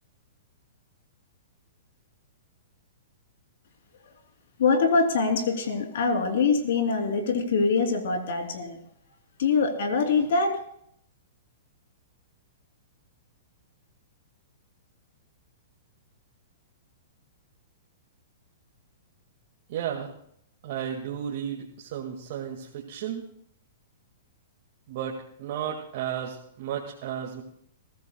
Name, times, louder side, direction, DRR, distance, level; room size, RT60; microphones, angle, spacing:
voice 1, 4.6-8.8 9.4-10.6, left 4 dB, 70° left, 4 dB, 3.0 m, -24 dB
voice 2, 19.7-20.1 20.6-23.2 24.9-27.4, right 9 dB, 55° right, 0 dB, 1.8 m, -33 dB
21.5 x 15.0 x 2.2 m, 0.71 s
hypercardioid pair, 125°, 0 cm